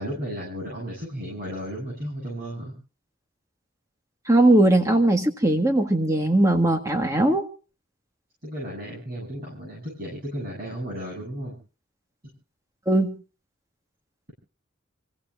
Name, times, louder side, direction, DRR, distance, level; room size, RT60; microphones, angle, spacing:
voice 1, 0.0-2.7 8.4-11.6, equal, 50° right, -3 dB, 7.4 m, -34 dB
voice 2, 4.3-7.5 12.9-13.1, right 1 dB, 15° right, 5 dB, 1.6 m, -19 dB
29.0 x 15.5 x 2.4 m, 0.36 s
head